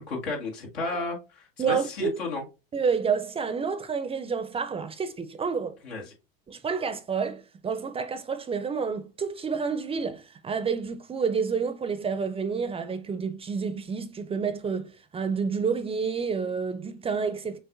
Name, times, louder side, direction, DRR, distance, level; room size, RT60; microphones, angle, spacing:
voice 1, 0.0-2.4 5.8-6.0, left 3 dB, 85° left, 1.8 m, -33 dB
voice 2, 1.6-2.2 2.7-5.8 6.5-17.6, right 5 dB, 20° right, 0.5 m, -29 dB
6.3 x 2.5 x 2.6 m
hypercardioid pair, 90°, 30 cm